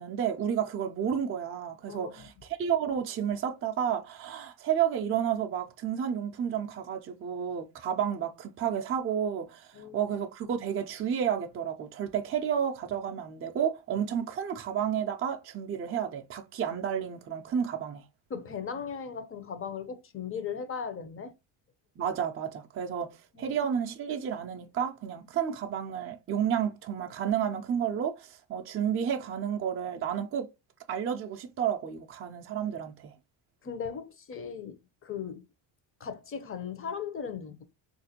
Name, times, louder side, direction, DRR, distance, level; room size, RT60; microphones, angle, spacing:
voice 1, 0.0-18.0 22.0-30.5 30.9-33.1, right 8 dB, 30° right, 0.4 m, -31 dB
voice 2, 1.9-2.3 9.7-10.1 18.3-21.3 23.3-23.6 33.6-35.4 36.0-37.6, left 6 dB, 30° left, 0.6 m, -38 dB
3.5 x 2.5 x 2.8 m
cardioid pair, 105°, 47 cm